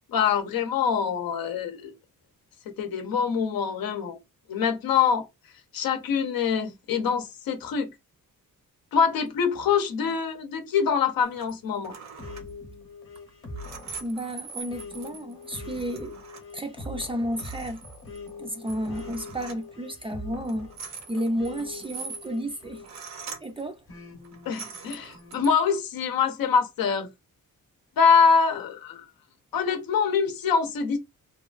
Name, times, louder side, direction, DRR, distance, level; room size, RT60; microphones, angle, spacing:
voice 1, 0.1-1.9 2.8-4.2 4.5-5.3 5.7-7.9 8.9-11.9 24.5-27.1 28.0-29.0 29.5-31.0, left 6 dB, 90° left, 0.7 m, -24 dB
sound 1, 11.2-11.6 11.8-12.5 13.2-16.5 16.8-16.9 17.2-18.3 18.7-19.6 20.4-23.6 24.2-25.6, right 5 dB, 55° right, 0.6 m, -43 dB
sound 2, 12.2-23.3 23.9-25.4, left 2 dB, 40° left, 0.9 m, -43 dB
voice 2, 14.0-16.1 16.5-17.8 18.4-20.7 21.1-22.8 23.4-23.8, equal, 15° right, 0.3 m, -32 dB
3.0 x 2.3 x 2.3 m
wide cardioid pair, 165°, 34 cm